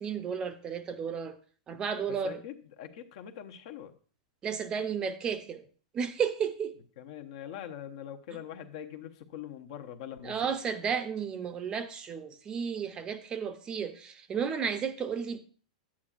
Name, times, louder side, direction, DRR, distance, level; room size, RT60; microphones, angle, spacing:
voice 1, 0.0-1.4 1.7-2.4 4.4-5.7 5.9-6.8 10.2-15.4, right 7 dB, 25° right, 0.6 m, -33 dB
voice 2, 2.2-3.9 7.0-10.3, left 10 dB, 60° left, 0.8 m, -43 dB
9.9 x 8.5 x 2.4 m
hypercardioid pair, 135°, 4 cm